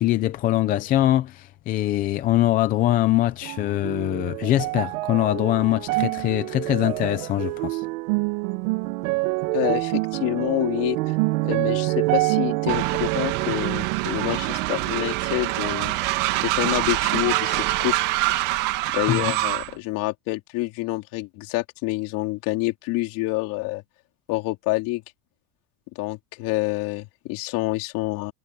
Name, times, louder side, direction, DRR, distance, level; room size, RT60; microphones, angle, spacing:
voice 1, 0.0-7.9 19.1-19.3, left 14 dB, 20° left, 0.4 m, -23 dB
sound 1, 3.4-16.9 17.2-18.2 18.8-18.9, right 22 dB, 60° right, 1.2 m, -27 dB
voice 2, 9.5-11.2 11.4-15.9 16.4-17.9 18.9-23.8 24.3-25.0 25.9-28.3, left 21 dB, 45° left, 3.4 m, -27 dB
Train, 12.7-19.7, right 19 dB, 45° right, 2.1 m, -25 dB
supercardioid pair, 165°, 44 cm